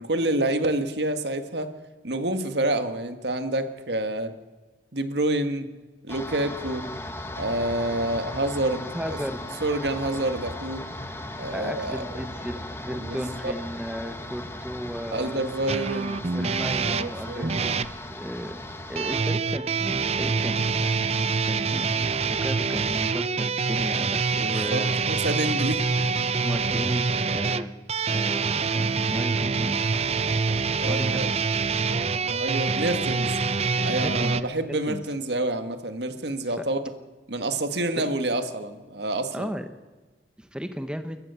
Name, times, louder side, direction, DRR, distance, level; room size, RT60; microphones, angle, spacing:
voice 1, 0.0-1.7 2.0-4.3 4.9-5.7 6.0-6.9 7.4-9.2 9.6-10.8 11.4-12.0 12.9-13.5 15.1-16.2 16.8-17.5 24.4-25.8 30.8-31.3 32.2-33.3 33.7-36.8 37.3-39.5, right 1 dB, 70° right, 8 dB, 1.8 m, -28 dB
sound 1, 6.1-19.2, left 1 dB, 15° left, 1.5 m, -37 dB
voice 2, 8.9-9.4 11.5-15.4 16.3-18.6 18.9-21.1 21.5-24.9 26.4-27.7 28.1-29.8 30.9-31.4 34.0-34.5 34.9-35.0 36.5-36.6 38.0-38.1 39.3-39.7 40.4-41.2, equal, 5° right, 8 dB, 1.1 m, -35 dB
sound 2, 15.7-17.9 19.0-34.4, right 4 dB, 35° right, 0.6 m, -25 dB
29.0 x 15.0 x 7.0 m, 1.2 s
head